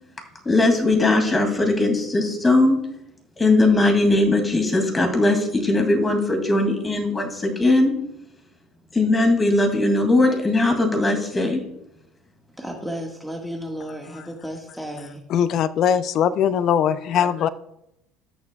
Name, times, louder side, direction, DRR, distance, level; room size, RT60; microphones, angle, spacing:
voice 1, 0.5-2.8 3.4-7.9 8.9-11.6, left 2 dB, 20° left, 2.4 m, -19 dB
voice 2, 12.6-15.2, equal, ahead, 1.7 m, -33 dB
voice 3, 15.3-17.5, left 8 dB, 55° left, 0.5 m, -21 dB
17.0 x 6.6 x 2.3 m
hypercardioid pair, 75°, 0 cm